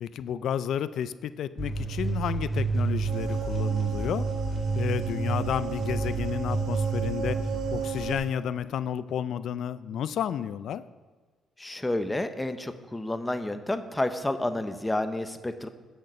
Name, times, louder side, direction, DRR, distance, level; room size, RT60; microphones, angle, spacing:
voice 1, 0.0-4.3 4.7-7.4 7.7-10.8, left 9 dB, 70° left, 15 dB, 0.3 m, -31 dB
sound 1, 1.6-8.2, right 4 dB, ahead, 3.5 m, -29 dB
sound 2, 3.1-8.3, right 6 dB, 80° right, 1.2 m, -36 dB
voice 2, 11.6-15.7, left 1 dB, 15° left, 9 dB, 0.7 m, -30 dB
10.5 x 6.5 x 5.6 m, 1.4 s
cardioid pair, 90°, 0 cm